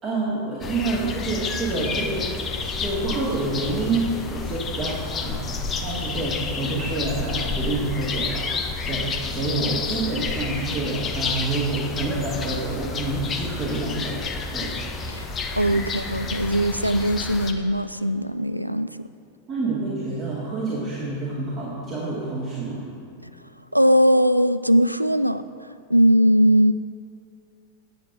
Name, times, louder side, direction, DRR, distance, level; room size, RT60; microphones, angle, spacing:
voice 1, 0.0-2.3 2.6-14.2 14.5-14.7 15.7-15.8 19.5-22.8, right 2 dB, 25° right, -8 dB, 2.3 m, -28 dB
sound 1, 0.6-17.5, left 4 dB, 25° left, 0.8 m, -30 dB
voice 2, 15.1-18.9 23.2-23.3 23.7-25.4 25.9-26.7, equal, 90° right, 12 dB, 0.3 m, -20 dB
9.2 x 7.7 x 6.0 m, 2.4 s
figure-of-eight pair, 90°, 0 cm